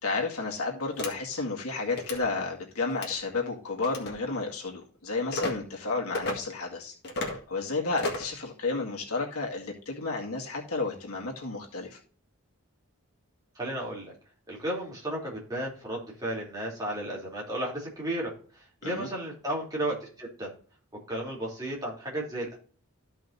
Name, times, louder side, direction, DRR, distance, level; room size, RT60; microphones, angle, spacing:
voice 1, 0.0-6.9 7.3-12.0 18.8-19.1, left 3 dB, 85° left, -1 dB, 2.1 m, -32 dB
sound 1, 1.0-1.1 1.9-2.2 2.9-3.2 3.8-4.1 5.3-5.5 6.1-6.4 7.0-7.4 8.0-8.3, left 2 dB, 50° left, 1.9 m, -32 dB
voice 2, 13.5-14.1 14.5-20.5 21.1-22.6, right 1 dB, 15° right, -4 dB, 3.3 m, -34 dB
13.5 x 5.6 x 2.7 m, 0.42 s
head